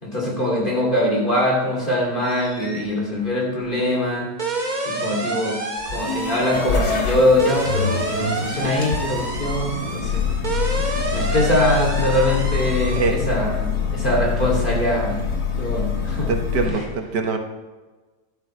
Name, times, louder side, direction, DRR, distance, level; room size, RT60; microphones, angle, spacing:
voice 1, 0.0-4.3 4.8-5.6 5.8-10.3 11.1-15.2 15.6-16.3 16.6-16.8, left 1 dB, 30° left, -3 dB, 2.9 m, -22 dB
sound 1, 2.2-2.9 3.2-13.1, right 2 dB, 30° right, 1.5 m, -29 dB
sound 2, 5.8-16.7, left 6 dB, 65° left, 1.9 m, -25 dB
voice 2, 16.3-17.4, right 4 dB, 85° right, 4 dB, 1.7 m, -23 dB
12.0 x 11.5 x 3.2 m, 1.2 s
omnidirectional pair, 1.8 m